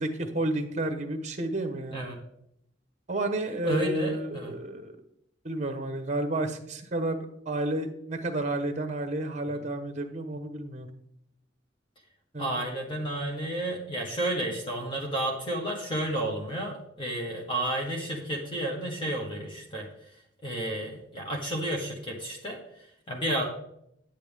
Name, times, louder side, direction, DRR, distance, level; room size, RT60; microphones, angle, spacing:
voice 1, 0.0-2.1 3.1-5.0 5.4-10.9 12.3-12.6, right 2 dB, 40° right, 7 dB, 1.1 m, -31 dB
voice 2, 3.6-4.5 9.5-9.6 12.4-20.2 20.4-23.4, right 1 dB, 30° left, 0 dB, 1.4 m, -32 dB
9.3 x 9.2 x 3.5 m, 0.76 s
head